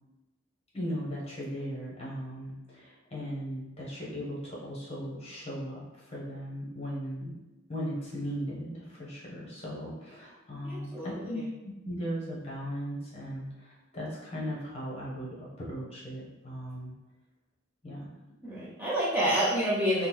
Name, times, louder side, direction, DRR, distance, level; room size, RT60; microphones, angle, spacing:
voice 1, 0.7-7.3 7.7-16.9 17.8-18.1, equal, 30° left, -5 dB, 0.9 m, -37 dB
voice 2, 10.6-11.3 18.4-20.1, equal, 10° right, -8 dB, 0.5 m, -28 dB
3.6 x 2.0 x 3.0 m, 1.0 s
head